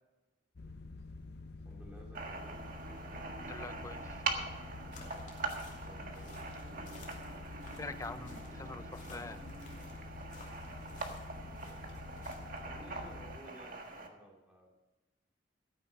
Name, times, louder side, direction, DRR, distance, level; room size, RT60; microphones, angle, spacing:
sound 1, 0.6-13.4, left 3 dB, 55° left, 0.6 m, -48 dB
voice 1, 1.6-2.7 5.7-6.4 12.5-14.8, right 1 dB, 5° right, -2 dB, 2.4 m, -55 dB
sound 2, 2.1-14.1, right 3 dB, 45° right, 1.6 m, -43 dB
voice 2, 3.4-4.2 7.8-9.4, left 3 dB, 15° left, 11 dB, 0.6 m, -45 dB
sound 3, 4.9-12.7, left 4 dB, 40° left, 2.7 m, -58 dB
13.5 x 9.5 x 5.5 m, 1.1 s
head